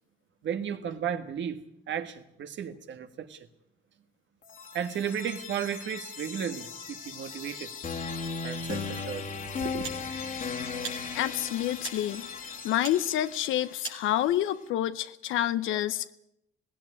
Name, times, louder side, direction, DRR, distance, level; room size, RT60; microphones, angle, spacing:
voice 1, 0.4-1.6 1.9-3.4 4.7-7.7 8.4-9.2 9.6-9.8, right 8 dB, 70° right, 1.7 m, -34 dB
sound 1, 4.4-14.4, left 5 dB, 45° left, 2.1 m, -37 dB
sound 2, 9.8-10.0 10.8-11.0 11.8-12.0 12.8-13.0 13.8-14.0, right 6 dB, 85° right, 4.2 m, -39 dB
voice 2, 11.1-12.3 12.6-16.1, left 12 dB, 85° left, 0.7 m, -28 dB
17.5 x 16.5 x 9.8 m
cardioid pair, 90°, 20 cm